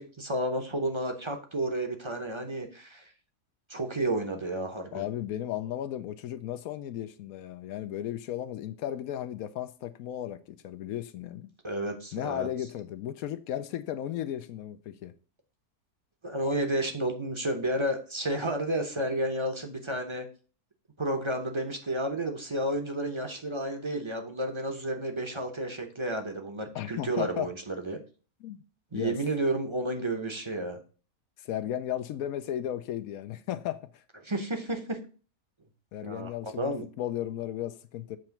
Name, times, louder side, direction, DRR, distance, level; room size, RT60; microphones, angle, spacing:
voice 1, 0.0-3.0 3.7-5.0 11.6-12.5 16.2-20.3 21.0-28.0 28.9-30.8 34.2-35.0 36.0-36.9, right 1 dB, 25° right, 0.7 m, -31 dB
voice 2, 4.9-11.5 12.1-15.1 26.7-27.5 28.4-28.6 28.9-29.2 31.4-34.0 35.9-38.2, left 11 dB, 75° left, 1.0 m, -35 dB
7.6 x 3.0 x 5.8 m
omnidirectional pair, 1.6 m